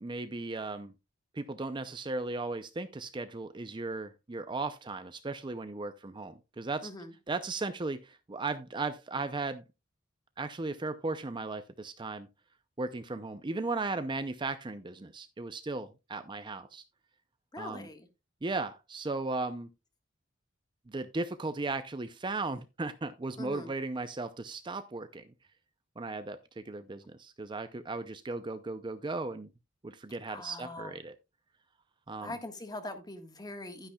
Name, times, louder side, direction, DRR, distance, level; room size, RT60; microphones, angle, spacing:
voice 1, 0.0-0.9 1.3-6.9 7.3-9.6 10.4-12.3 12.8-16.8 17.6-17.9 18.4-19.7 20.9-25.3 26.0-29.5 29.8-31.2 32.1-32.3, right 3 dB, 25° right, 0.5 m, -36 dB
voice 2, 17.5-18.1 23.4-23.7 30.3-31.0 32.2-33.9, left 2 dB, 20° left, 1.5 m, -42 dB
11.5 x 9.8 x 2.3 m
head